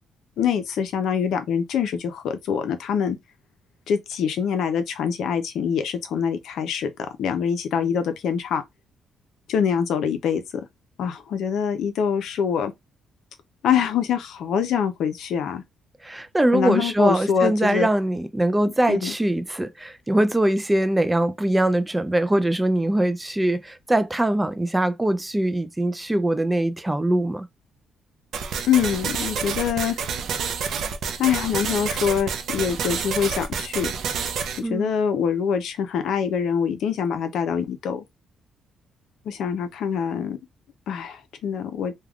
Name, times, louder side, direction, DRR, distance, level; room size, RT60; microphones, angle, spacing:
voice 1, 0.4-3.2 3.9-6.9 7.2-8.6 9.5-10.6 11.0-12.7 13.6-15.6 16.5-17.9 18.6-19.1 28.7-30.0 31.2-33.9 34.6-38.0 39.3-40.4 40.9-41.9, left 7 dB, 75° left, 0.5 m, -24 dB
voice 2, 16.0-27.5 34.6-34.9, right 1 dB, 10° right, 0.4 m, -22 dB
sound 1, 28.3-34.6, right 6 dB, 70° right, 0.5 m, -28 dB
3.3 x 2.3 x 2.3 m
cardioid pair, 90°, 0 cm